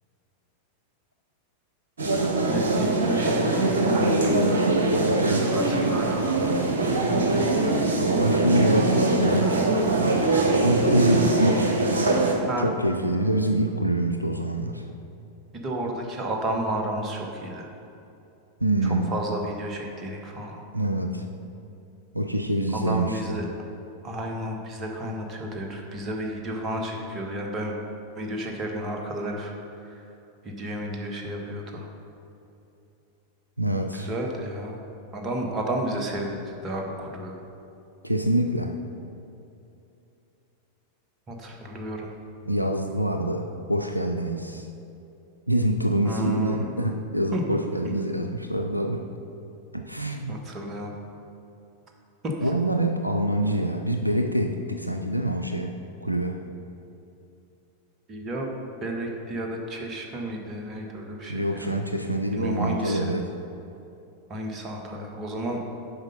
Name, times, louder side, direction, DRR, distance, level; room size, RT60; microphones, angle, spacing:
sound 1, 2.0-12.3, right 2 dB, 70° right, 1.1 m, -22 dB
voice 1, 2.5-4.7 5.4-6.6 12.5-12.7 15.5-17.7 18.8-20.6 22.7-23.5 24.0-27.8 28.1-29.5 29.8-30.0 30.4-31.9 33.9-34.8 35.1-37.3 41.3-42.1 46.0-46.7 47.3-47.4 47.8-47.9 50.3-50.9 52.2-52.5 58.1-58.5 58.8-61.7 62.3-63.1 64.3-65.6, right 1 dB, 25° right, 1 dB, 1.3 m, -32 dB
voice 2, 4.9-5.6 8.0-9.5 10.6-11.8 12.6-14.9 18.6-19.1 20.7-21.3 22.1-23.4 33.6-34.1 38.0-38.7 42.5-44.7 45.5-49.1 49.7-50.4 52.4-56.4 61.3-63.3, right 1 dB, 90° right, 5 dB, 0.4 m, -26 dB
7.9 x 5.3 x 5.5 m, 2.8 s
figure-of-eight pair, 90°, 0 cm